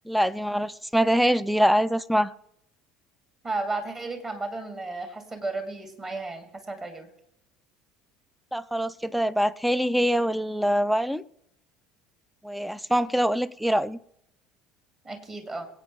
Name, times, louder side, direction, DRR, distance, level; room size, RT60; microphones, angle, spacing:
voice 1, 0.1-2.3 8.5-11.2 12.4-14.0, equal, ahead, 0.5 m, -24 dB
voice 2, 3.4-7.1 15.0-15.7, right 3 dB, 25° right, 2.6 m, -33 dB
24.5 x 8.7 x 3.3 m
figure-of-eight pair, 65°, 2 cm